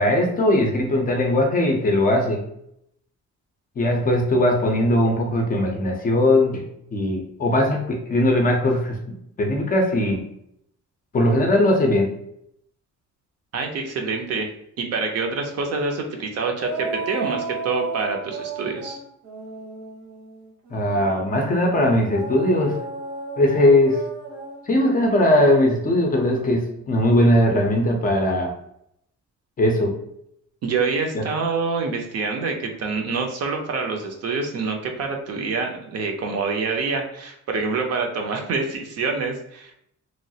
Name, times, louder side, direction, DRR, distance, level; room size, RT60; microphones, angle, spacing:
voice 1, 0.0-2.4 3.8-6.6 6.9-9.0 9.4-10.2 11.1-12.1 20.7-22.7 23.4-24.0 24.7-28.5 29.6-29.9 31.1-31.2, left 1 dB, 30° left, 1 dB, 0.4 m, -19 dB
voice 2, 13.5-14.5 14.8-19.0 30.6-39.7, right 4 dB, 55° right, 3 dB, 0.5 m, -26 dB
sound 1, 16.6-21.2 22.1-26.8, right 3 dB, 90° right, 1.2 m, -34 dB
3.0 x 2.3 x 2.7 m, 0.73 s
cardioid pair, 170°, 30 cm